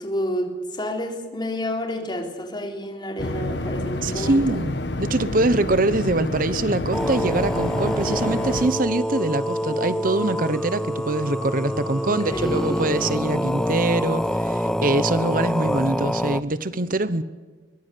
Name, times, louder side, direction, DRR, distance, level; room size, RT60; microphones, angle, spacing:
voice 1, 0.0-4.6 11.9-12.9, equal, 25° left, 3 dB, 3.9 m, -29 dB
sound 1, 3.2-8.7, left 2 dB, 70° left, 1.5 m, -29 dB
voice 2, 4.0-17.2, right 2 dB, 50° right, 14 dB, 1.0 m, -24 dB
sound 2, 6.9-16.4, equal, 5° left, 0.6 m, -26 dB
23.5 x 20.0 x 8.4 m, 1.4 s
head